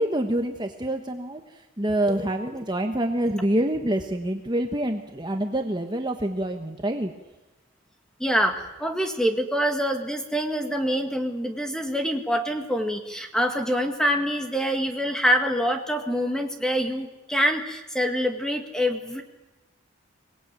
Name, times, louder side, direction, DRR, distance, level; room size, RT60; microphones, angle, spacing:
voice 1, 0.0-7.1, right 1 dB, 20° right, 4 dB, 1.2 m, -26 dB
voice 2, 8.2-19.2, equal, 5° left, 5 dB, 1.9 m, -25 dB
24.5 x 19.0 x 9.0 m, 1.1 s
head